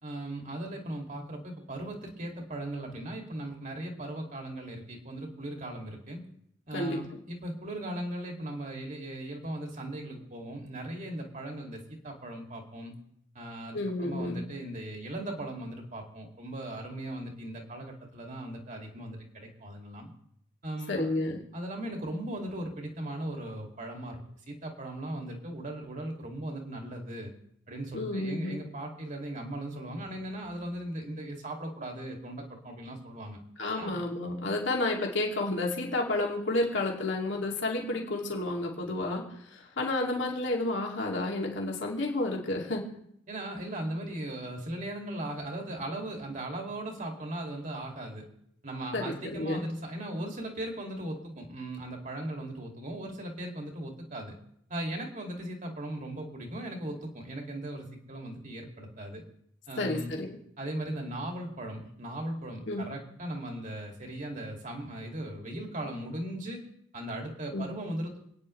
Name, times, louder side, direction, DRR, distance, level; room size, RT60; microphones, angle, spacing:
voice 1, 0.0-6.2 6.7-12.9 13.3-20.1 20.6-21.1 21.5-24.2 24.5-27.3 27.7-33.4 33.8-34.0 43.3-48.3 48.6-54.4 54.7-59.2 59.7-60.2 60.6-66.6 66.9-68.2, right 1 dB, 40° right, 1 dB, 2.4 m, -38 dB
voice 2, 13.7-14.4 20.9-21.4 27.9-28.6 33.6-39.3 39.5-42.9 48.9-49.6 59.8-60.4 62.7-62.8 67.5-67.7, left 2 dB, 65° left, -1 dB, 2.5 m, -31 dB
27.5 x 9.6 x 3.2 m, 0.72 s
head